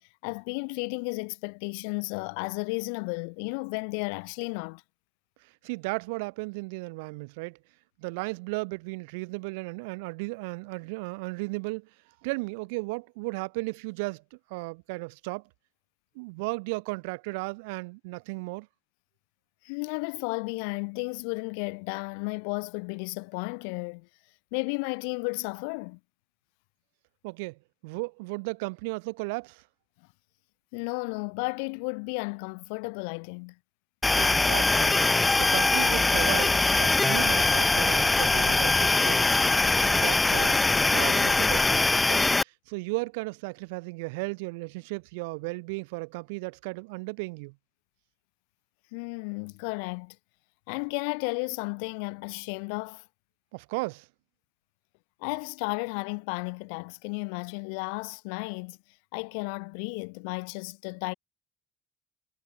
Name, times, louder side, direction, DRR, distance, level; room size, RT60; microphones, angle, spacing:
voice 1, 0.0-4.8 19.6-24.1 24.5-26.0 30.7-33.6 48.9-50.2 50.7-53.0 55.2-58.8 59.1-61.1, left 37 dB, 80° left, 2.6 m, -33 dB
voice 2, 5.4-7.6 8.0-11.9 12.2-15.4 16.2-18.7 27.2-29.6 34.1-35.0 35.4-39.3 39.9-40.6 40.8-47.5 53.5-54.1, right 27 dB, 80° right, 3.9 m, -35 dB
sound 1, 34.0-42.4, left 3 dB, 20° left, 1.0 m, -22 dB
hypercardioid pair, 60°, 0 cm